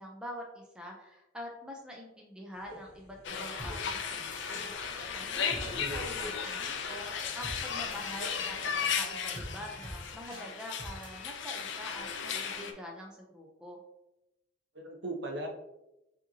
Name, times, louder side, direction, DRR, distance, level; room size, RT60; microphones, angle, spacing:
voice 1, 0.0-4.7 5.1-7.1 7.4-13.8, equal, 5° right, -1 dB, 0.4 m, -45 dB
sound 1, 2.5-10.1, equal, 35° left, 1.0 m, -53 dB
sound 2, 3.2-12.7, left 6 dB, 60° left, 0.4 m, -36 dB
sound 3, 3.6-3.7 4.3-4.7 5.5-6.0 6.5-6.6 7.2-7.6 7.9-8.5 9.3-9.5 9.8-10.0 10.3-10.4 10.8-11.1, equal, 25° right, 0.9 m, -43 dB
voice 2, 5.6-6.4 14.7-15.5, right 1 dB, 55° right, 2 dB, 0.7 m, -39 dB
4.8 x 2.9 x 2.7 m, 0.92 s
head